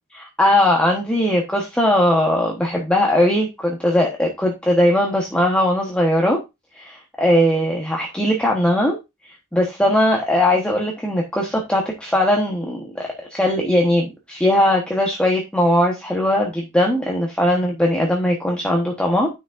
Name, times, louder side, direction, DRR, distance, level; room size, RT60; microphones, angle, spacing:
voice 1, 0.1-6.4 6.7-9.0 9.2-19.3, left 1 dB, 5° left, -1 dB, 1.1 m, -19 dB
10.0 x 6.2 x 2.5 m, 0.23 s
head